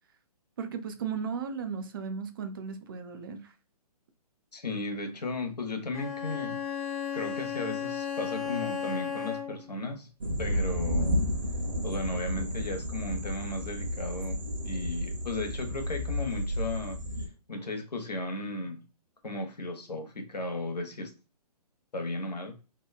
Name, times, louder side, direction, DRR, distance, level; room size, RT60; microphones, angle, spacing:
voice 1, 0.6-3.5, right 6 dB, 35° right, 0.4 m, -35 dB
voice 2, 4.5-6.6 7.1-10.1 10.4-11.2 11.8-17.0 17.5-18.8 19.2-21.1 21.9-22.5, left 2 dB, 80° left, 0.7 m, -35 dB
Bowed string instrument, 5.9-9.7, left 8 dB, 40° left, 0.8 m, -34 dB
sound 1, 10.2-17.3, equal, 50° right, 0.9 m, -32 dB
2.9 x 2.2 x 2.2 m
figure-of-eight pair, 135°, 20 cm